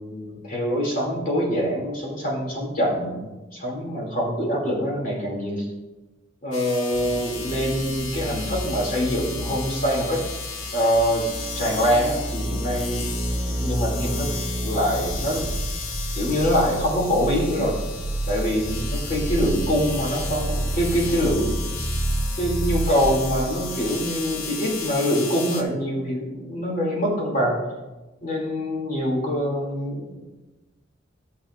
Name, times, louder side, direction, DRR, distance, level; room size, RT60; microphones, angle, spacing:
voice 1, 0.0-5.7 6.4-10.2 10.7-11.2 11.6-13.1 13.4-15.5 16.1-17.7 18.3-21.6 22.4-27.6 28.2-30.2, equal, 45° left, -2 dB, 2.6 m, -24 dB
sound 1, 6.5-25.6, left 5 dB, 90° left, 1.1 m, -35 dB
sound 2, 6.9-24.5 24.7-24.8, right 1 dB, 25° right, 0.6 m, -30 dB
14.0 x 6.9 x 2.5 m, 1.1 s
head